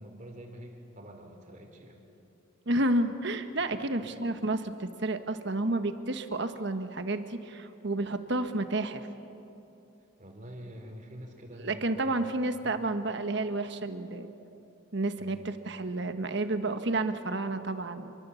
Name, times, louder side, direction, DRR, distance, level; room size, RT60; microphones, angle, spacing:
voice 1, 0.0-2.0 3.7-4.1 10.2-12.3 12.6-12.8 15.2-15.5, equal, 35° right, 3 dB, 3.5 m, -47 dB
voice 2, 2.7-9.1 11.6-14.3 14.9-18.1, right 2 dB, 55° right, 8 dB, 1.3 m, -30 dB
27.5 x 23.5 x 7.1 m, 2.8 s
head